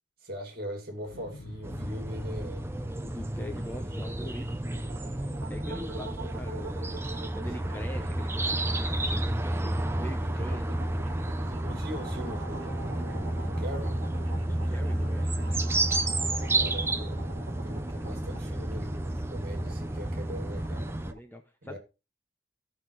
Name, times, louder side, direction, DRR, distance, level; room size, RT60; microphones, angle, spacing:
voice 1, 0.2-2.7 7.6-7.8 11.5-14.0 16.5-20.9 21.6-21.8, equal, 50° right, 2.3 m, -41 dB
Explosion, 1.0-7.1 7.4-7.5, left 2 dB, 70° left, 1.1 m, -50 dB
Early morning summer ambience, 1.6-21.1, right 1 dB, 10° right, 0.5 m, -31 dB
voice 2, 3.0-4.9 5.5-6.7 7.3-10.8 14.4-15.5 21.1-21.8, left 1 dB, 10° left, 0.8 m, -43 dB
sound 1, 4.6-21.2, right 3 dB, 70° right, 1.4 m, -45 dB
15.5 x 5.7 x 3.1 m
head